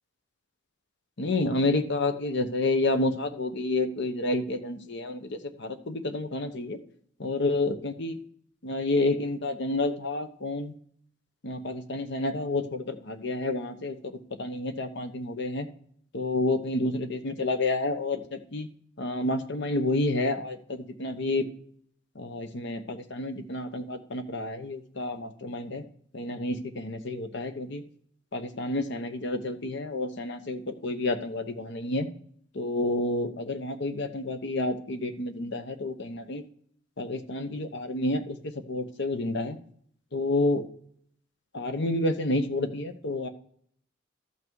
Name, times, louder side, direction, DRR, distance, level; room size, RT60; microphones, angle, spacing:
voice 1, 1.2-6.8 7.2-8.2 8.6-10.7 11.4-15.7 16.1-18.7 19.0-21.4 22.1-25.8 26.1-27.8 28.3-32.1 32.5-36.4 37.0-39.6 40.1-40.6 41.5-43.3, left 2 dB, 60° left, 8 dB, 1.0 m, -29 dB
13.5 x 5.9 x 4.6 m, 0.63 s
head